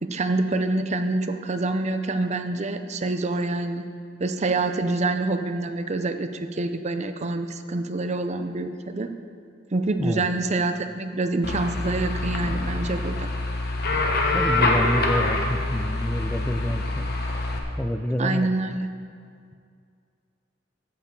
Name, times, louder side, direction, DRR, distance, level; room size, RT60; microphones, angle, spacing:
voice 1, 0.0-3.9 4.2-9.1 9.7-13.3 18.2-18.9, right 2 dB, 35° right, 8 dB, 0.6 m, -26 dB
sound 1, 11.4-17.6, left 2 dB, 55° left, 1.3 m, -25 dB
voice 2, 14.3-17.1 17.8-18.5, left 1 dB, 10° left, 6 dB, 0.4 m, -27 dB
14.0 x 8.7 x 3.8 m, 2.2 s
head